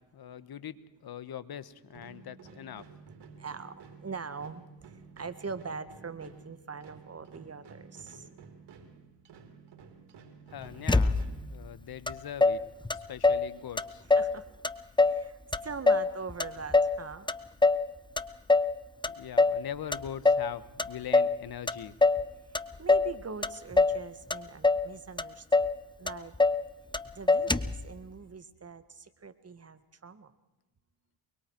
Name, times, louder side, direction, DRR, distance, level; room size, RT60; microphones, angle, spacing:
voice 1, 0.1-2.8 10.5-11.2 11.5-12.6 12.9-14.0 19.2-21.9, left 9 dB, 55° left, 14 dB, 1.5 m, -41 dB
sound 1, 1.9-12.1, right 5 dB, 70° right, 3.4 m, -52 dB
voice 2, 3.4-4.6 5.2-8.3 14.1-14.5 15.0-15.4 15.6-17.3 22.8-25.7 26.0-26.3 27.2-30.3, right 5 dB, 35° right, 12 dB, 1.7 m, -42 dB
Motor vehicle (road), 10.9-11.5 12.1-12.2 12.4-13.5 13.8-14.4 14.6-15.2 15.5-17.0 17.3-17.9 18.2-18.7 19.0-19.6 19.9-20.5 20.8-21.4 21.7-22.3 22.5-23.1 23.4-24.0 24.3-24.9 25.2-25.3 25.5-25.8 26.1-26.6 26.9-27.0 27.3-27.8, left 3 dB, 10° left, 0.9 m, -24 dB
24.0 x 23.5 x 4.7 m, 0.96 s
supercardioid pair, 70°, 43 cm